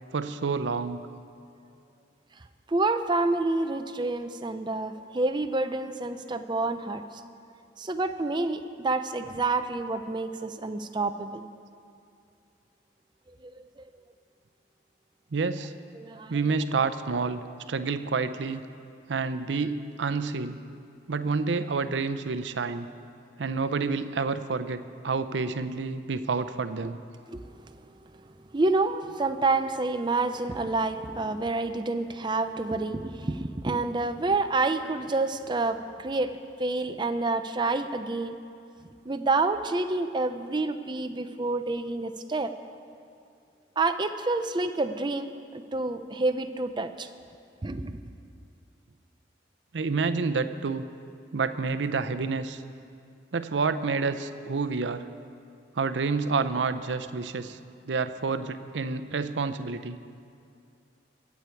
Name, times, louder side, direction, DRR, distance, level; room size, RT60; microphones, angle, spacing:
voice 1, 0.1-1.1 15.3-15.7 16.3-18.6 19.1-20.6 21.1-22.9 23.4-27.0 49.7-50.9 51.3-52.6 53.3-55.1 55.8-57.6 57.9-60.0, right 4 dB, 80° right, 11 dB, 0.6 m, -29 dB
voice 2, 2.7-7.0 7.8-11.4 13.4-13.9 15.9-16.4 27.3-27.8 28.5-38.4 39.1-42.5 43.8-45.3 45.7-47.1 47.6-48.0, right 3 dB, 25° right, 9 dB, 0.5 m, -28 dB
22.5 x 8.3 x 4.6 m, 2.4 s
head